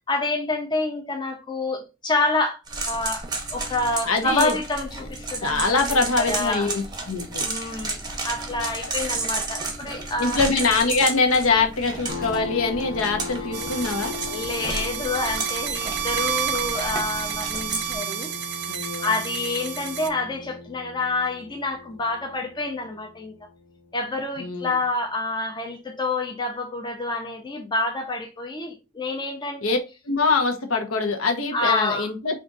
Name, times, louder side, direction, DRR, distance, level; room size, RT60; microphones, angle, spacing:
voice 1, 0.1-2.6 2.9-3.2 3.5-5.8 6.2-6.7 7.4-10.4 14.3-18.3 19.0-23.3 23.9-29.6 31.5-32.1, left 2 dB, 20° left, 0.5 m, -28 dB
sound 1, 2.7-17.9, right 3 dB, 20° right, 0.7 m, -32 dB
voice 2, 4.1-4.5 5.4-7.4 10.2-14.1 18.7-19.1 24.4-24.8 29.6-29.8 30.0-32.4, left 4 dB, 80° left, 0.8 m, -23 dB
sound 2, 12.1-25.4, left 4 dB, 50° left, 1.0 m, -39 dB
sound 3, 13.5-20.1, right 9 dB, 55° right, 0.6 m, -30 dB
3.6 x 2.5 x 3.8 m
head